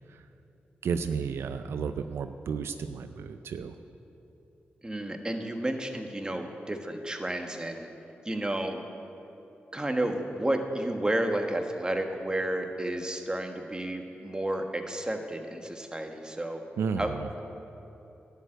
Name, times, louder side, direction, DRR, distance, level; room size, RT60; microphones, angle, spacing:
voice 1, 0.8-3.7 16.8-17.3, right 6 dB, 80° right, 9 dB, 0.4 m, -32 dB
voice 2, 4.8-7.9 8.2-8.8 9.7-16.6 17.0-17.4, right 1 dB, 20° right, 4 dB, 1.4 m, -31 dB
11.0 x 6.8 x 9.0 m, 2.9 s
cardioid pair, 55°, 4 cm